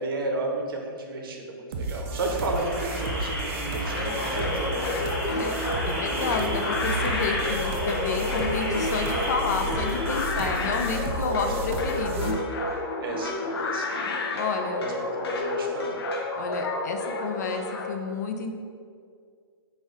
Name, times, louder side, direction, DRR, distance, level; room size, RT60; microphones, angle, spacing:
voice 1, 0.0-4.8 10.3-10.6 11.3-11.8 13.0-13.9 14.5-16.0, right 2 dB, 65° right, 1 dB, 0.8 m, -33 dB
sound 1, 1.7-12.3, right 1 dB, 30° right, 0.3 m, -33 dB
sound 2, 2.3-10.2, equal, 5° left, 0.7 m, -33 dB
sound 3, 4.0-17.8, left 2 dB, 80° left, 0.7 m, -30 dB
voice 2, 5.9-12.4 14.3-14.8 16.4-18.5, left 4 dB, 45° left, 5 dB, 0.4 m, -30 dB
3.9 x 2.6 x 4.8 m, 2.2 s
hypercardioid pair, 170°, 13 cm